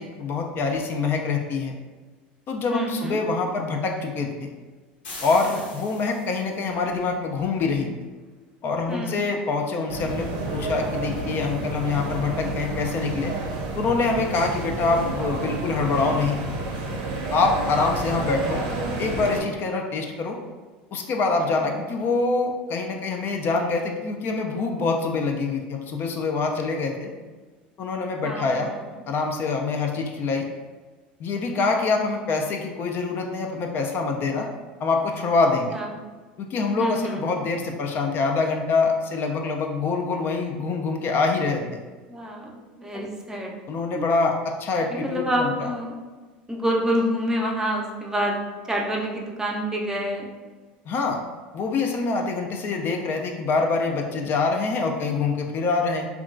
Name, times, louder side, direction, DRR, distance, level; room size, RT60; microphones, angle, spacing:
voice 1, 0.0-1.7 2.5-4.5 5.2-7.9 8.6-13.3 13.8-16.4 17.3-18.6 19.0-20.4 20.9-27.1 27.8-28.7 29.1-30.5 31.2-34.5 34.8-35.8 36.4-41.8 42.9-43.1 43.7-45.7 50.9-51.2 51.5-56.1, left 4 dB, 45° left, 2 dB, 0.3 m, -25 dB
voice 2, 2.7-3.2 8.9-9.4 28.2-28.8 35.7-35.9 36.8-37.2 42.1-43.6 44.9-45.9 46.5-50.3, equal, 10° right, -1 dB, 0.5 m, -27 dB
sound 1, 5.0-6.6, left 2 dB, 80° left, 1.0 m, -40 dB
sound 2, 9.9-19.4, right 2 dB, 70° right, 0.6 m, -30 dB
2.8 x 2.3 x 2.4 m, 1.3 s
hypercardioid pair, 90°, 5 cm